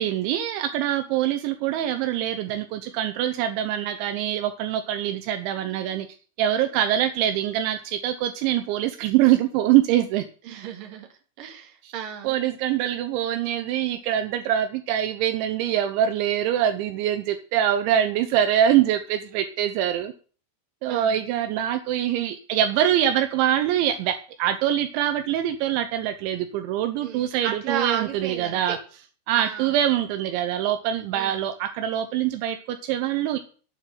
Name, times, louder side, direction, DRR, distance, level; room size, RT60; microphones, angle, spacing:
voice 1, 0.0-6.1 6.4-10.2 11.8-11.9 12.2-20.1 20.8-28.8 29.3-33.4, right 11 dB, 80° right, 8 dB, 3.1 m, -24 dB
voice 2, 10.4-11.1 11.4-12.4 20.9-21.3 27.0-28.8 29.4-29.8 31.1-31.5, right 8 dB, 55° right, 3 dB, 3.2 m, -33 dB
9.1 x 7.7 x 9.2 m, 0.40 s
omnidirectional pair, 5.5 m